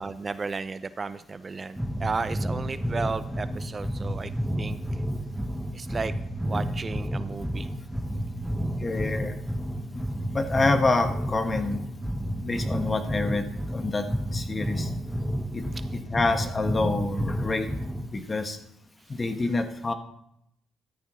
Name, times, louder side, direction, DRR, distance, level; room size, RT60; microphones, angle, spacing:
voice 1, 0.0-4.3 4.6-5.0 5.7-6.1 6.4-7.7 15.7-15.8, right 4 dB, 35° right, 13 dB, 0.5 m, -34 dB
sound 1, 1.8-18.2, equal, ahead, 1.1 m, -31 dB
voice 2, 8.8-9.4 9.9-11.8 12.4-13.5 13.7-14.9 15.5-15.7 15.9-17.7 18.1-18.6 19.1-19.9, left 3 dB, 30° left, 7 dB, 1.3 m, -27 dB
14.0 x 13.0 x 3.1 m, 0.79 s
cardioid pair, 80°, 0 cm